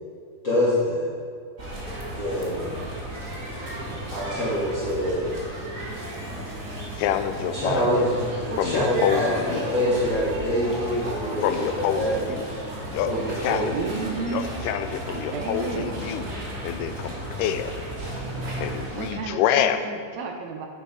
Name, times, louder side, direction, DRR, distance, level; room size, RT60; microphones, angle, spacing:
voice 1, 0.4-1.1 2.1-2.6 4.1-5.3 7.5-9.3 9.5-12.2 13.1-13.7, equal, 40° left, -9 dB, 2.6 m, -25 dB
sound 1, 1.6-19.1, right 1 dB, 30° right, 1.7 m, -34 dB
voice 2, 7.0-8.2 8.6-9.7 11.4-12.5 12.9-13.1 13.4-13.7 14.3-16.3 16.6-17.7 18.6-19.8, left 10 dB, 85° left, 9 dB, 2.1 m, -27 dB
voice 3, 13.7-14.5 15.1-16.0 18.9-20.7, right 5 dB, 70° right, 4 dB, 1.9 m, -32 dB
9.7 x 9.3 x 4.9 m, 2.2 s
omnidirectional pair, 3.7 m